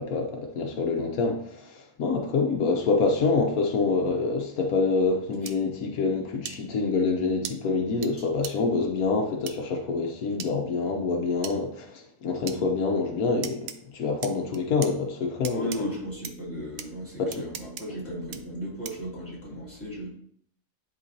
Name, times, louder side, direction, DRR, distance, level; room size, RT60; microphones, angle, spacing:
voice 1, 0.0-15.9 17.2-17.5, left 4 dB, 85° left, 1.4 m, -26 dB
sound 1, 5.5-5.6 6.4-6.6 7.4-7.5 8.0-8.1 8.4-8.5 9.5-9.6 10.4-10.5 11.4-11.6 12.5-12.6 13.4-13.8 14.2-14.9 15.4-15.8 16.2-16.3 16.8-16.9 17.3-17.8 18.3-18.4 18.8-19.1, right 9 dB, 70° right, 0.9 m, -36 dB
voice 2, 15.5-20.1, equal, 10° left, 2.9 m, -35 dB
10.5 x 3.7 x 2.7 m
omnidirectional pair, 1.5 m